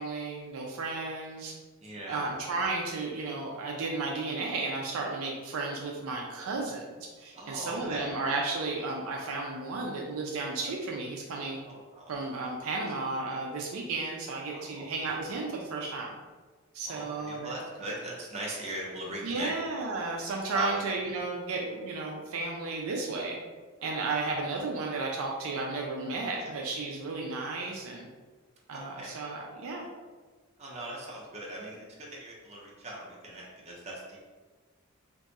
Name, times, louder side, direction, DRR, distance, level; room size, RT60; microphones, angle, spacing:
voice 1, 0.0-1.5 2.1-11.6 12.1-16.2 16.7-17.6 19.2-23.4 23.8-28.1 28.7-29.9, right 3 dB, 65° right, -1 dB, 0.4 m, -33 dB
voice 2, 1.8-2.3 7.3-8.1 11.6-12.1 14.5-14.8 16.9-19.5 20.5-20.8 28.7-29.1 30.6-31.8 32.1-34.2, right 1 dB, 30° right, -4 dB, 0.7 m, -39 dB
2.6 x 2.4 x 4.0 m, 1.4 s
head